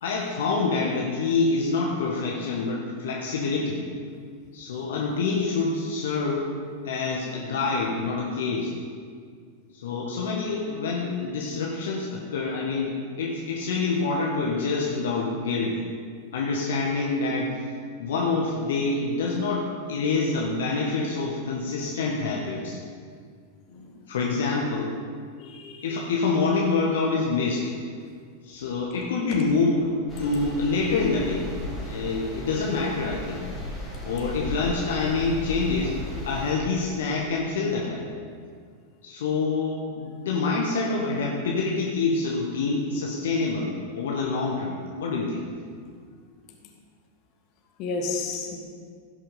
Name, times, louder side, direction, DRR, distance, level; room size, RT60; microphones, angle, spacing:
voice 1, 0.0-3.8 4.5-6.5 6.8-8.7 9.7-15.8 16.3-17.7 18.0-22.8 24.1-24.9 25.8-27.7 28.4-29.9 30.2-31.5 31.8-33.4 34.0-35.9 36.2-38.0 39.0-45.5, left 3 dB, 60° left, -2 dB, 1.3 m, -26 dB
voice 2, 23.7-24.0 25.4-26.0 29.3-29.4 30.3-30.4 47.8-48.6, left 4 dB, 40° left, 1 dB, 2.0 m, -33 dB
sound 1, 30.1-36.5, left 1 dB, 5° right, 3.6 m, -35 dB
16.5 x 5.9 x 5.5 m, 2.1 s
figure-of-eight pair, 90°, 0 cm